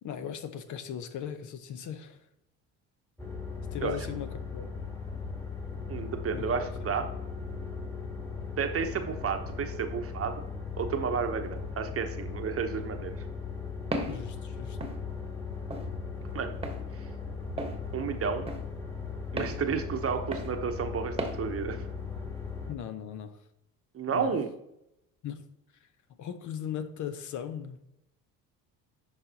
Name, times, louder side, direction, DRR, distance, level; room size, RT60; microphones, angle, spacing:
voice 1, 0.0-2.2 3.7-4.7 6.3-6.7 14.1-14.8 22.7-23.4 24.1-24.4 25.2-25.5 25.8-25.9 26.2-27.8, left 9 dB, 50° left, 10 dB, 0.8 m, -38 dB
sound 1, 3.2-22.7, left 5 dB, 5° left, 1.4 m, -38 dB
voice 2, 5.9-7.0 8.6-10.4 10.8-13.1 16.3-16.5 16.9-17.1 17.9-18.5 19.3-21.8 23.9-24.5, right 6 dB, 40° right, 6 dB, 0.9 m, -31 dB
Walk footsteps, 13.9-14.2 14.8-15.0 15.7-15.9 16.6-16.8 17.6-17.8 18.5-18.6 19.4-19.6 20.3-20.5 21.2-21.4, right 2 dB, 15° right, 1.2 m, -34 dB
10.5 x 4.1 x 2.8 m, 0.80 s
supercardioid pair, 75°, 37 cm